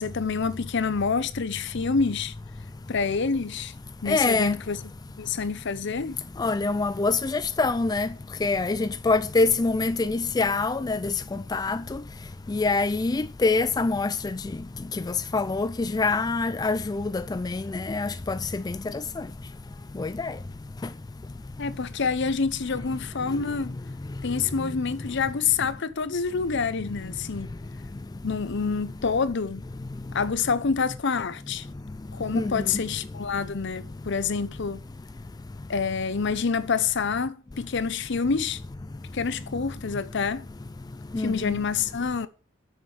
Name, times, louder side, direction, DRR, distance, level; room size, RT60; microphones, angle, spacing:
voice 1, 0.0-2.3 2.9-3.7 4.0-4.8 5.2-6.2 21.6-23.8 24.2-27.5 28.2-29.6 30.1-31.7 32.1-34.8 35.7-38.6 39.1-40.5 41.2-42.3, left 5 dB, 65° left, 0.7 m, -27 dB
voice 2, 4.1-4.6 6.4-8.1 8.4-11.1 11.5-12.0 12.5-14.1 15.1-18.8 19.2-19.3 20.0-20.3 32.3-32.6 41.1-41.6, left 3 dB, 20° left, 0.4 m, -25 dB
7.3 x 6.5 x 7.8 m
head